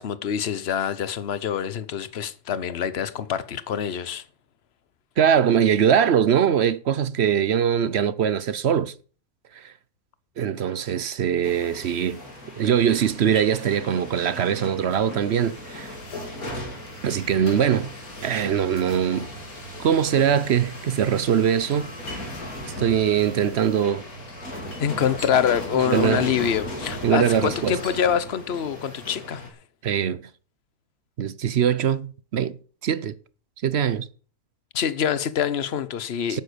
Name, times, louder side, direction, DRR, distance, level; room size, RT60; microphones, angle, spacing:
voice 1, 0.0-4.2 24.8-29.5 34.7-36.4, left 8 dB, 45° left, 1.1 m, -25 dB
voice 2, 5.2-8.9 9.6-9.7 10.4-12.2 12.6-15.9 17.0-17.9 18.2-19.3 19.8-21.9 22.6-24.0 25.8-26.3 27.0-27.8 29.8-30.3 31.2-32.6 32.8-33.1 33.6-34.1 36.3-36.4, right 8 dB, 55° right, 0.8 m, -22 dB
sound 1, 11.4-29.5, left 1 dB, 75° left, 4.0 m, -37 dB
11.0 x 9.3 x 6.8 m
omnidirectional pair, 1.6 m